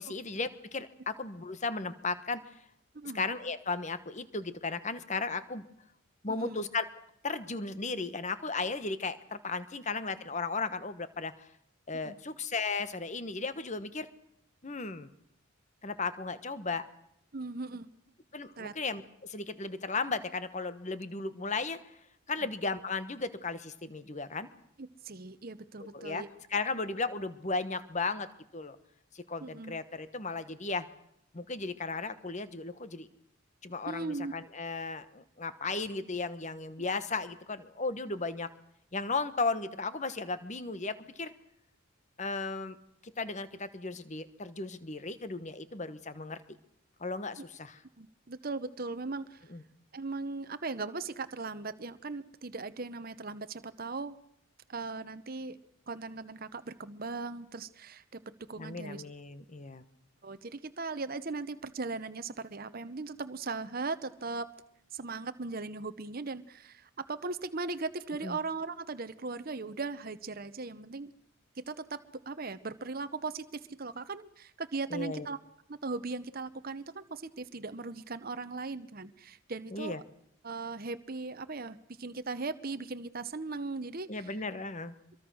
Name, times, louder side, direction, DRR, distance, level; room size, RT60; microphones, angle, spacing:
voice 1, 0.0-2.4 3.1-5.6 6.2-6.9 7.2-11.5 11.9-14.1 14.6-15.1 15.8-16.8 18.3-21.9 22.3-24.5 25.9-26.2 26.5-28.3 28.5-28.8 29.1-30.9 31.3-33.1 33.6-38.5 38.9-41.3 42.2-42.8 43.0-46.4 47.0-47.8 49.5-49.6 58.6-59.8 68.2-68.4 74.9-75.3 79.7-80.0 84.1-84.9, left 3 dB, 35° left, 13 dB, 1.1 m, -35 dB
voice 2, 17.3-17.9 18.6-18.7 24.8-26.3 29.4-29.7 33.9-34.3 48.0-49.4 49.9-54.2 54.7-55.6 55.9-58.2 58.5-59.0 60.2-64.5 64.9-71.1 71.6-72.0 72.3-75.4 75.7-80.0 80.4-84.3, right 3 dB, 40° right, 12 dB, 0.9 m, -38 dB
24.5 x 23.0 x 6.3 m, 0.75 s
head